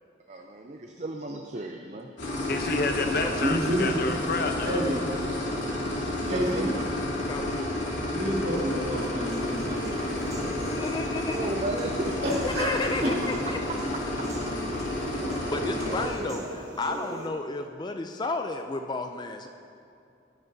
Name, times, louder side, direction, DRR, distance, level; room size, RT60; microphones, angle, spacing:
voice 1, 0.3-2.1 6.2-6.9 11.3-12.3 14.9-17.2 17.5-17.6, right 2 dB, 40° right, 3 dB, 0.5 m, -36 dB
sound 1, 2.2-16.1, left 1 dB, 70° left, 2.6 m, -31 dB
voice 2, 2.5-4.8, left 3 dB, 50° left, 5 dB, 0.8 m, -29 dB
voice 3, 3.3-3.9 4.6-5.1 6.3-6.7 8.1-10.6 12.2-12.7 13.0-13.1 15.0-15.3, equal, 55° right, -5 dB, 2.5 m, -29 dB
voice 4, 7.3-7.8 10.7-11.5 12.4-13.6 15.5-19.5, left 3 dB, 20° left, 6 dB, 0.3 m, -32 dB
Human voice / Piano, 9.3-17.3, right 2 dB, 15° right, 1.0 m, -42 dB
15.0 x 9.6 x 2.7 m, 2.6 s
head